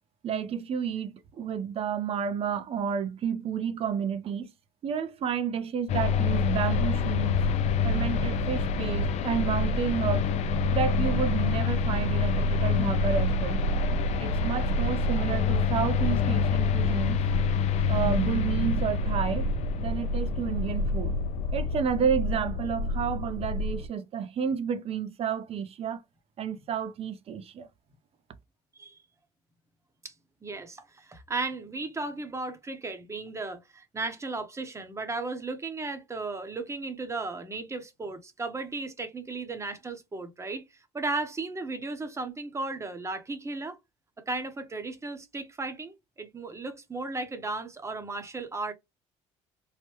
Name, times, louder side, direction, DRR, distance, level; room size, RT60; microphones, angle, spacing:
voice 1, 0.2-4.5 4.8-7.4 7.8-10.3 10.7-13.6 14.2-17.2 17.9-19.5 19.8-21.1 21.5-26.0 26.4-27.7, right 7 dB, 45° right, 0.6 m, -30 dB
sound 1, 5.9-23.9, left 4 dB, 55° left, 0.4 m, -26 dB
voice 2, 30.4-40.6 40.9-43.8 44.3-48.7, right 3 dB, 20° right, 0.8 m, -35 dB
3.2 x 2.1 x 3.0 m
cardioid pair, 95°, 13 cm